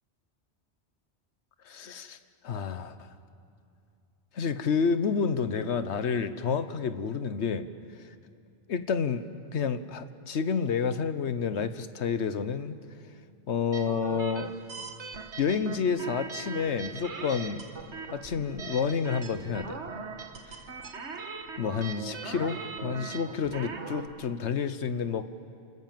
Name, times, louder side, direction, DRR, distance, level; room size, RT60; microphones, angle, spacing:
voice 1, 1.6-2.2 2.4-3.1 4.3-7.6 8.0-8.1 8.7-12.8 13.5-14.9 15.4-17.6 18.1-19.8 20.5-20.6 21.6-25.3, left 6 dB, 85° left, 12 dB, 1.2 m, -29 dB
sound 1, 13.7-24.1, right 5 dB, 90° right, 1.7 m, -40 dB
29.5 x 20.5 x 7.6 m, 2.5 s
omnidirectional pair, 1.1 m